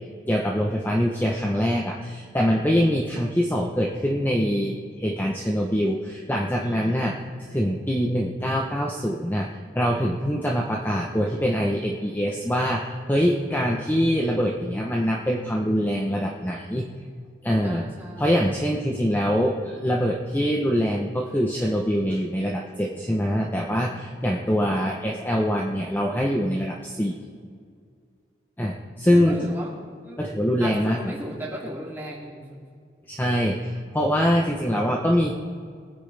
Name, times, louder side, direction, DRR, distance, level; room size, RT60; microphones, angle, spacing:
voice 1, 0.3-7.2 7.5-9.5 9.7-16.8 17.4-17.8 18.2-27.2 28.6-29.4 30.2-31.1 33.1-35.3, equal, 10° left, -1 dB, 0.9 m, -24 dB
voice 2, 6.6-7.3 17.6-18.6 24.2-24.7 29.1-29.7 30.0-30.2 30.6-32.6, right 1 dB, 10° right, -4 dB, 2.8 m, -37 dB
22.0 x 9.6 x 3.4 m, 2.1 s
head